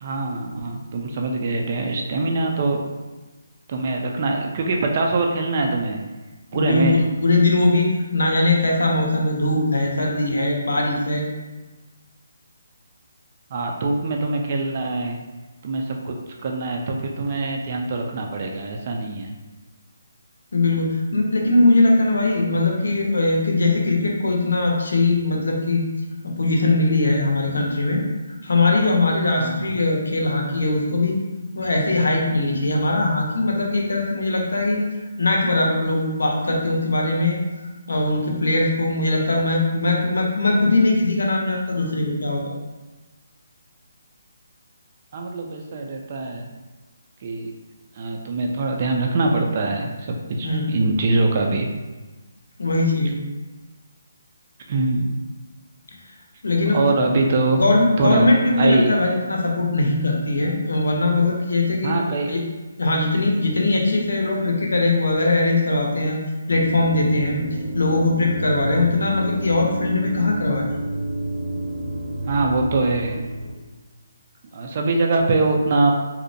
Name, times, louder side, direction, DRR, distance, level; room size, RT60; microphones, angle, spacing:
voice 1, 0.0-2.8 3.7-6.0 6.5-6.9 13.5-15.2 15.6-16.2 16.4-19.3 29.4-29.8 45.1-46.5 47.2-47.5 47.9-51.7 54.7-55.2 56.7-57.6 58.0-59.0 61.8-62.3 72.2-73.2 74.5-75.9, right 3 dB, 40° right, 1 dB, 0.3 m, -23 dB
voice 2, 6.5-11.3 20.5-25.8 26.2-28.0 28.4-31.2 31.5-34.8 35.2-37.4 37.9-42.6 50.4-50.7 52.6-53.2 56.4-56.8 57.6-61.9 62.3-62.4 62.8-66.2 66.5-67.4 67.7-70.7, left 2 dB, 80° left, -1 dB, 0.6 m, -20 dB
sound 1, 66.5-73.5, right 1 dB, 85° right, 1.0 m, -30 dB
2.5 x 2.1 x 2.6 m, 1.2 s
figure-of-eight pair, 155°, 0 cm